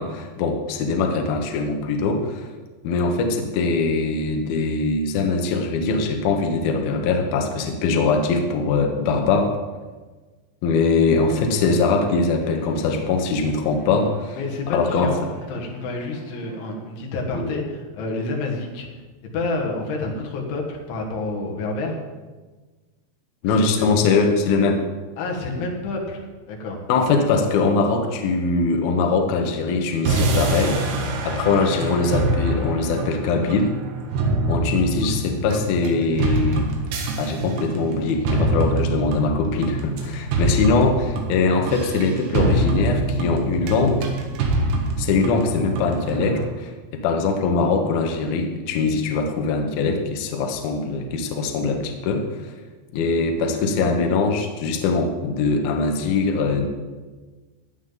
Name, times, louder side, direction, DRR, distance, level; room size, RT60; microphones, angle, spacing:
voice 1, 0.0-2.5 2.8-9.6 10.6-14.4 14.7-15.1 17.3-17.5 23.4-24.8 26.9-30.8 31.2-33.7 34.5-36.7 37.2-44.1 45.0-52.5 52.9-56.7, left 4 dB, 65° left, 3 dB, 2.8 m, -22 dB
Bowed string instrument, 11.1-16.9, right 2 dB, 40° right, 3.6 m, -43 dB
voice 2, 14.4-18.9 19.3-22.0 23.4-23.9 25.2-26.8, left 2 dB, 90° left, 0 dB, 4.2 m, -29 dB
sound 1, 30.1-46.4, right 2 dB, 75° right, 3.7 m, -25 dB
16.5 x 10.5 x 4.0 m, 1.3 s
omnidirectional pair, 5.2 m